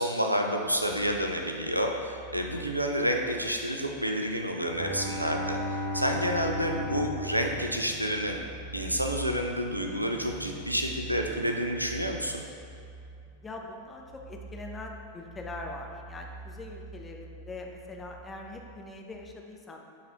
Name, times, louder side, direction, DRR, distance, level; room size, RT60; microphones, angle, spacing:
voice 1, 0.0-5.6 5.9-8.4 8.7-12.4, equal, 90° right, 3 dB, 0.5 m, -29 dB
sound 1, 0.6-19.3, right 3 dB, ahead, 1.0 m, -46 dB
Bowed string instrument, 4.7-8.4, left 1 dB, 60° right, 0.8 m, -35 dB
voice 2, 13.4-19.8, left 2 dB, 15° left, 1 dB, 0.6 m, -42 dB
9.3 x 3.9 x 2.8 m, 2.3 s
figure-of-eight pair, 90°, 0 cm